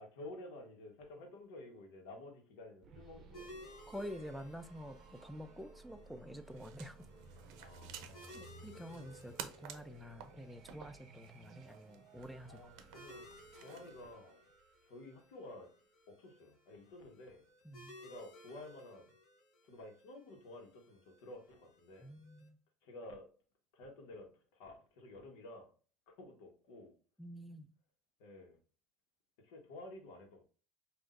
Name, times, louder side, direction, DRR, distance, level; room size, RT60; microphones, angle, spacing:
voice 1, 0.0-3.5 7.6-8.5 12.5-13.3 13.6-14.5 14.8-15.7 16.1-17.4 18.0-19.1 19.6-22.1 22.8-23.3 23.7-25.7 26.1-26.9 28.2-28.6 29.4-30.4, left 2 dB, 85° left, 1.2 m, -52 dB
sound 1, 2.8-15.5, right 3 dB, 40° right, 0.7 m, -58 dB
sound 2, 3.3-22.5, left 1 dB, 50° left, 1.4 m, -59 dB
voice 2, 3.9-7.1 8.3-12.7 17.6-17.9 22.0-22.6 27.2-27.7, equal, ahead, 0.4 m, -48 dB
sound 3, 6.4-14.0, right 9 dB, 75° right, 0.6 m, -53 dB
5.7 x 2.6 x 2.5 m
cardioid pair, 135°, 0 cm